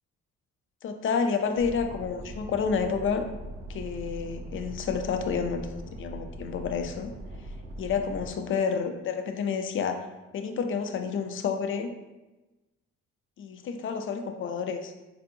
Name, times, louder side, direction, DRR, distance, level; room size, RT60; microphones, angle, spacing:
voice 1, 0.8-3.2 3.7-7.1 7.8-10.0 10.3-11.9 13.4-14.9, left 6 dB, 45° left, 7 dB, 0.4 m, -29 dB
sound 1, 1.6-8.3, right 1 dB, 45° right, 0.7 m, -41 dB
3.5 x 2.7 x 2.6 m, 1.1 s
cardioid pair, 90°, 30 cm